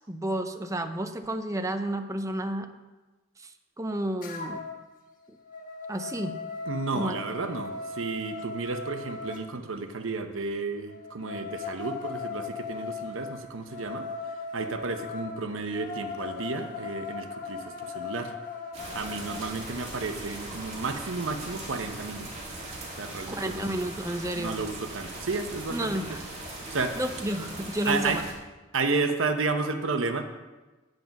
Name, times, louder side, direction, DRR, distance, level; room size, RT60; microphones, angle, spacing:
voice 1, 0.1-2.7 3.4-3.5 3.8-4.6 5.9-6.3 6.9-7.2 23.3-24.6 25.7-26.2 27.0-28.2, right 1 dB, 15° right, 7 dB, 0.6 m, -31 dB
sound 1, 4.2-4.8 5.2-9.4 10.9-19.5, left 4 dB, 40° left, 1.3 m, -38 dB
voice 2, 6.7-14.1 14.5-18.3 18.9-22.3 23.0-23.8 24.4-26.0 26.5-27.0 27.9-28.2 28.7-30.3, right 3 dB, 85° right, 7 dB, 0.9 m, -32 dB
sound 2, 18.7-28.3, right 2 dB, 30° right, 2.2 m, -40 dB
9.2 x 7.9 x 5.9 m, 1.2 s
head